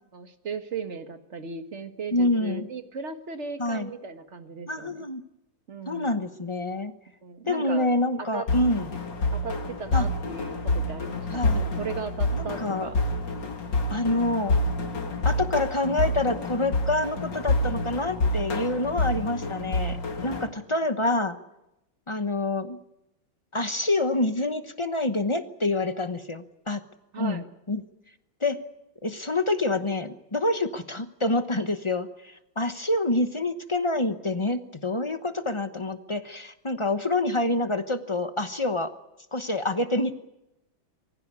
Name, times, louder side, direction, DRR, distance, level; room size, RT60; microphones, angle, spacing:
voice 1, 0.1-5.0 5.7-6.2 7.2-7.9 8.3-8.5 9.3-13.0 20.7-20.8 27.1-27.5, right 5 dB, 40° right, 7 dB, 1.7 m, -37 dB
voice 2, 2.1-2.7 3.6-3.9 4.7-5.2 5.9-6.9 7.5-8.9 9.9-10.1 11.3-11.6 12.4-12.9 13.9-14.6 15.2-21.4 22.1-22.8 23.5-26.8 27.2-27.8 28.4-28.6 29.0-38.9 39.3-40.2, left 2 dB, 25° left, 9 dB, 0.6 m, -27 dB
sound 1, 8.5-20.5, left 2 dB, 65° left, 2.9 m, -28 dB
24.0 x 16.0 x 9.7 m, 0.91 s
omnidirectional pair, 2.1 m